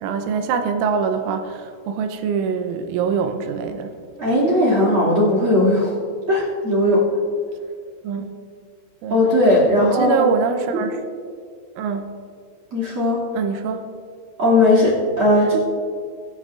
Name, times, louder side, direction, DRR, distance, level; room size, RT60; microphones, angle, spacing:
voice 1, 0.0-4.0 8.0-8.3 9.0-9.2 9.8-11.0 11.8-12.1 13.3-13.9, right 6 dB, 85° right, 7 dB, 3.2 m, -24 dB
voice 2, 4.2-5.9 6.3-7.0 9.1-10.3 10.7-10.8 12.7-13.2 14.4-15.6, left 1 dB, 35° right, -5 dB, 2.3 m, -17 dB
23.5 x 9.2 x 2.5 m, 2.1 s
omnidirectional pair, 5.6 m